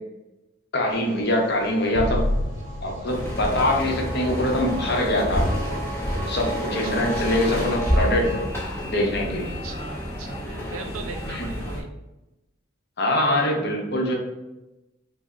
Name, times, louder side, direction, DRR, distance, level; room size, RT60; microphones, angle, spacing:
voice 1, 0.7-2.3 2.8-5.5 6.3-8.4 8.8-9.6 11.3-11.5 13.0-14.1, left 1 dB, 50° left, 0 dB, 0.7 m, -23 dB
sound 1, 0.9-8.5, right 1 dB, 35° right, 0.8 m, -36 dB
Explosion, 1.9-5.2, left 1 dB, 85° left, 0.4 m, -30 dB
sound 2, 3.1-11.8, equal, 10° left, 0.6 m, -29 dB
voice 2, 6.8-7.7 9.6-11.9, right 4 dB, 80° right, 5 dB, 0.5 m, -39 dB
3.2 x 2.0 x 3.6 m, 0.97 s
head